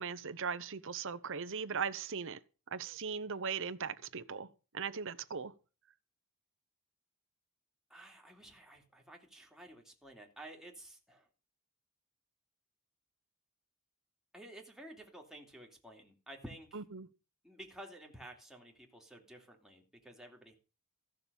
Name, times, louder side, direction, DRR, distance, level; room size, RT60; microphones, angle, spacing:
voice 1, 0.0-2.4 2.7-4.5 4.7-5.5 16.7-17.1, right 6 dB, 60° right, 0.9 m, -39 dB
voice 2, 7.9-11.3 14.3-16.8 17.4-20.5, right 1 dB, ahead, 2.9 m, -52 dB
15.0 x 6.8 x 7.0 m
head